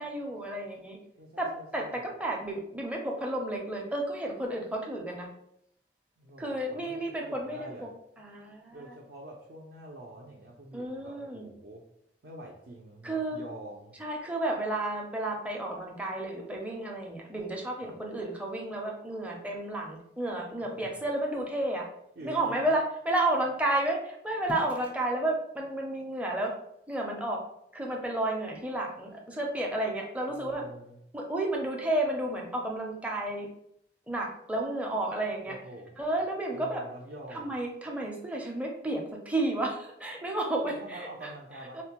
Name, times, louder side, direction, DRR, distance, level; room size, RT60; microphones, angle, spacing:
voice 1, 0.0-1.0 1.4-5.3 6.4-7.9 8.2-8.9 10.7-11.5 13.0-13.4 14.0-21.8 22.2-26.5 26.9-27.4 27.7-30.7 31.1-33.5 34.1-35.6 36.0-36.8 37.3-41.3 41.7-41.8, right 1 dB, 10° right, -1 dB, 0.5 m, -32 dB
voice 2, 1.2-2.0 6.2-7.9 8.7-11.9 12.2-13.9 17.8-18.0 20.8-21.0 22.2-22.7 30.3-31.0 35.4-36.0 36.5-37.6 40.6-41.8, right 1 dB, 65° right, -2 dB, 0.5 m, -46 dB
4.2 x 2.1 x 2.9 m, 0.74 s
head